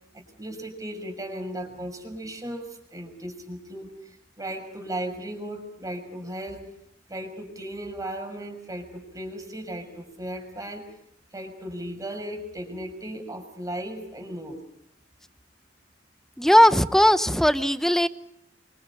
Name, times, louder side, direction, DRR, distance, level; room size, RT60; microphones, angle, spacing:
voice 1, 0.1-6.7 7.1-10.8 11.3-14.6, right 1 dB, 20° right, 5 dB, 6.1 m, -36 dB
voice 2, 16.4-18.1, equal, ahead, 12 dB, 1.0 m, -18 dB
28.5 x 25.0 x 5.5 m, 0.74 s
head